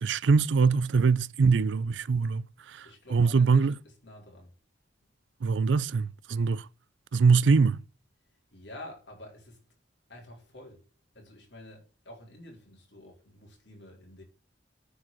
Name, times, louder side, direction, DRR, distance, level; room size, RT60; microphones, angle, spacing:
voice 1, 0.0-2.9 3.1-3.7 5.4-6.7 7.1-7.8, right 5 dB, 85° right, 0.5 m, -23 dB
voice 2, 2.8-4.6 8.5-9.6 10.1-10.8 11.1-14.2, left 1 dB, 70° left, 4.3 m, -49 dB
9.6 x 4.8 x 7.7 m
head